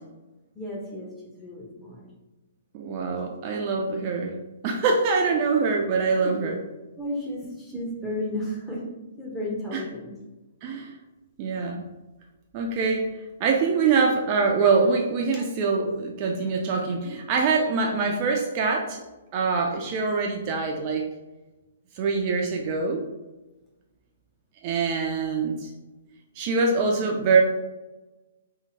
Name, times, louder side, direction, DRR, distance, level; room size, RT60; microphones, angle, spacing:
voice 1, 0.6-1.1 1.4-2.1 3.3-3.4 5.5-5.6 6.2-6.5 7.0-8.8 9.2-10.1 15.3-15.4, left 1 dB, 10° left, -4 dB, 0.8 m, -33 dB
voice 2, 2.7-4.3 4.6-6.6 9.7-9.9 10.6-10.9 11.4-11.9 12.5-13.0 13.4-19.0 19.3-21.1 22.0-23.0 24.6-25.7 26.4-27.4, right 4 dB, 40° right, 1 dB, 0.3 m, -24 dB
2.8 x 2.0 x 2.8 m, 1.1 s
hypercardioid pair, 125°, 0 cm